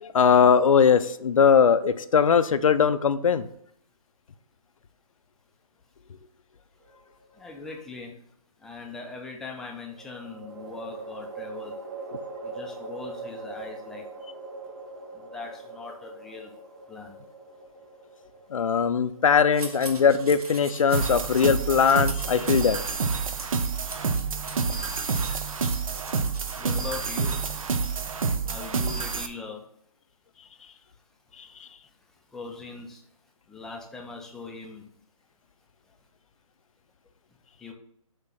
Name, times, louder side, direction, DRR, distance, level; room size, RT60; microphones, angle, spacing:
voice 1, 0.0-3.5 18.5-22.8 25.3-25.4, left 6 dB, 60° left, 12 dB, 0.6 m, -20 dB
sound 1, 6.9-7.7 9.9-21.2, right 3 dB, 35° right, 0.9 m, -42 dB
voice 2, 7.4-8.1 8.6-11.7 12.6-14.0 15.3-16.5 16.9-17.1 26.6-27.4 28.5-29.6 32.3-33.0 33.5-34.8 37.6-37.7, left 4 dB, ahead, 0 dB, 0.4 m, -40 dB
sound 2, 19.5-21.4 21.7-27.0 27.3-29.2, right 2 dB, 85° right, 1.9 m, -43 dB
sound 3, 20.9-29.3, right 5 dB, 65° right, 0.8 m, -28 dB
7.6 x 2.9 x 5.8 m, 0.70 s
hypercardioid pair, 150°, 19 cm